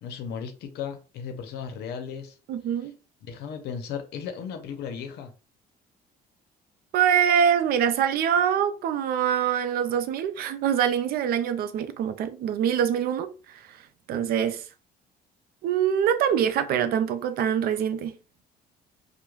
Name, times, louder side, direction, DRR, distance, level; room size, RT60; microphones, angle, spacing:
voice 1, 0.0-2.3 3.2-5.3, left 7 dB, 75° left, 0.6 m, -35 dB
voice 2, 2.5-2.9 6.9-13.8 14.1-14.6 15.6-18.1, right 8 dB, 65° right, 0.4 m, -24 dB
2.2 x 2.1 x 3.1 m
cardioid pair, 110°, 17 cm